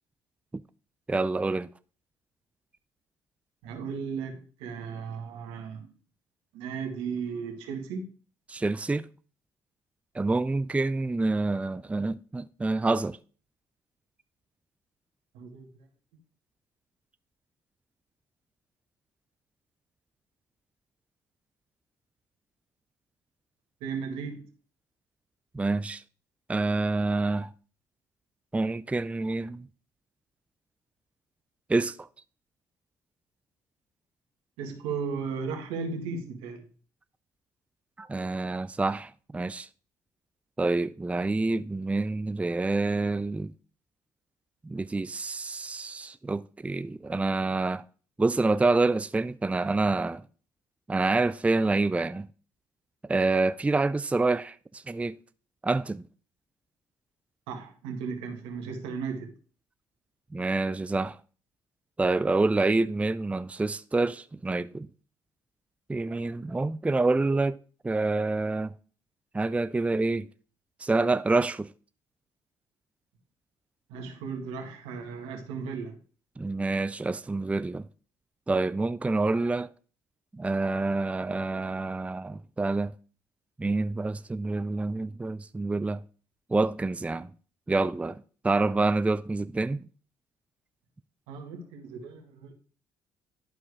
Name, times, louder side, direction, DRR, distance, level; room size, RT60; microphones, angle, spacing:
voice 1, 1.1-1.7 8.5-9.1 10.2-13.2 25.5-26.0 26.5-27.5 28.5-29.7 31.7-32.0 38.0-39.7 40.6-43.5 44.6-47.8 48.2-50.2 50.9-52.3 53.1-55.2 55.6-56.0 60.3-61.2 62.0-64.9 65.9-67.6 67.8-68.7 69.3-70.3 70.8-71.7 76.4-77.8 78.5-79.7 80.4-82.9 83.6-86.0 86.5-87.3 87.7-89.8, right 3 dB, 15° right, 0.4 m, -27 dB
voice 2, 3.6-5.9 6.5-8.1 15.3-15.9 23.8-24.5 34.6-36.7 57.5-59.3 73.9-76.0 91.3-92.5, right 5 dB, 80° right, 1.8 m, -35 dB
11.5 x 4.7 x 4.9 m
hypercardioid pair, 60°, 10 cm